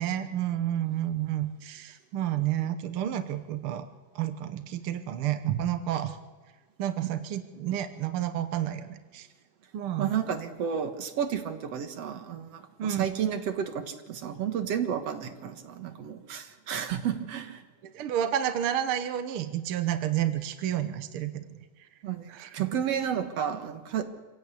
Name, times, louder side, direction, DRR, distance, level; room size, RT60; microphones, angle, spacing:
voice 1, 0.0-3.9 4.1-6.2 6.8-9.3 9.7-10.1 12.8-13.1 17.8-21.4 22.3-22.7, right 11 dB, 80° right, 10 dB, 1.2 m, -30 dB
voice 2, 10.0-17.6 22.0-24.0, right 8 dB, 55° right, 7 dB, 2.2 m, -32 dB
26.0 x 16.5 x 8.5 m, 1.3 s
omnidirectional pair, 4.0 m